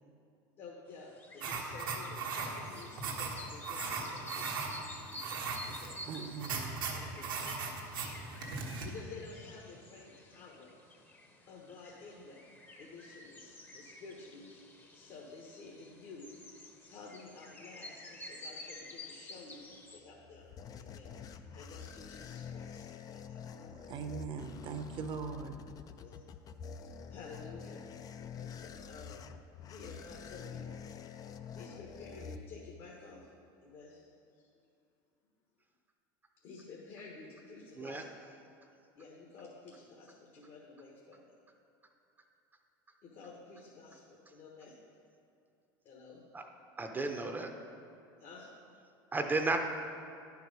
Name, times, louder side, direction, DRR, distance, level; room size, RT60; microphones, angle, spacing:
voice 1, 0.6-6.0 6.8-7.3 8.6-11.1 11.5-12.5 12.8-14.6 14.9-16.3 16.9-20.5 20.8-23.7 26.0-26.2 26.6-27.8 28.4-29.2 29.7-30.7 31.0-33.3 33.6-34.5 36.4-38.1 39.0-41.3 43.0-44.8 45.8-46.2 48.2-48.5, left 4 dB, 55° left, -2 dB, 1.3 m, -52 dB
sound 1, 0.9-20.0, left 1 dB, 15° left, 0.9 m, -51 dB
sound 2, 1.4-8.9, right 4 dB, 85° right, 1.2 m, -39 dB
voice 2, 6.1-6.9 23.9-25.6, right 6 dB, 45° right, 6 dB, 0.8 m, -40 dB
sound 3, 20.0-33.0, left 7 dB, 35° left, 0.4 m, -47 dB
voice 3, 46.8-47.5 49.1-49.6, right 3 dB, 15° right, 4 dB, 0.7 m, -33 dB
9.9 x 4.8 x 5.3 m, 2.5 s
supercardioid pair, 100°, 11 cm